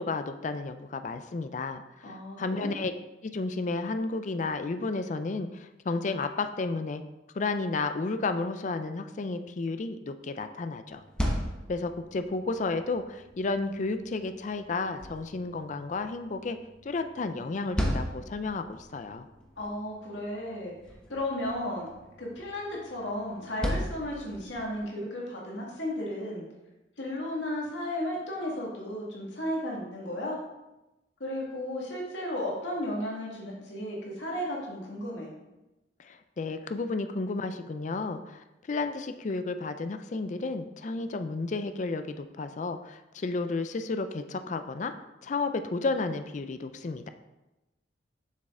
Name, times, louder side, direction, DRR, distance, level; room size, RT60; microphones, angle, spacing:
voice 1, 0.0-2.9 3.2-7.0 7.3-11.0 11.7-16.6 16.8-19.3 36.0-44.9 45.2-47.1, left 3 dB, 40° left, 9 dB, 0.4 m, -32 dB
voice 2, 2.0-2.7 19.6-20.7 21.1-21.9 22.2-26.4 27.0-30.4 31.2-35.3, left 1 dB, 90° left, -3 dB, 2.0 m, -34 dB
sound 1, 10.9-24.8, equal, 5° left, 1.0 m, -38 dB
7.5 x 6.4 x 3.7 m, 1.0 s
head